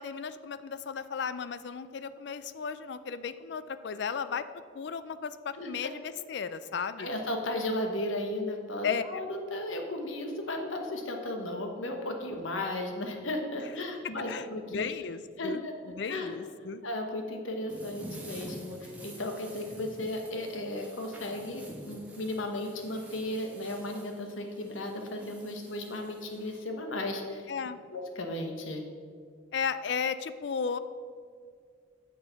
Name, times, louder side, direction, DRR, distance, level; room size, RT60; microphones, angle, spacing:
voice 1, 0.0-4.5 4.7-7.1 8.8-9.2 14.3-15.6 16.0-16.8 27.5-27.8 29.5-30.8, left 6 dB, 60° left, 13 dB, 0.4 m, -35 dB
voice 2, 5.5-5.9 7.0-14.9 15.4-15.7 16.1-16.3 16.8-27.4 27.9-28.8, left 1 dB, 80° left, 3 dB, 1.1 m, -35 dB
sound 1, 17.7-26.6, right 1 dB, 5° right, 1.1 m, -48 dB
6.8 x 6.8 x 5.8 m, 2.1 s
head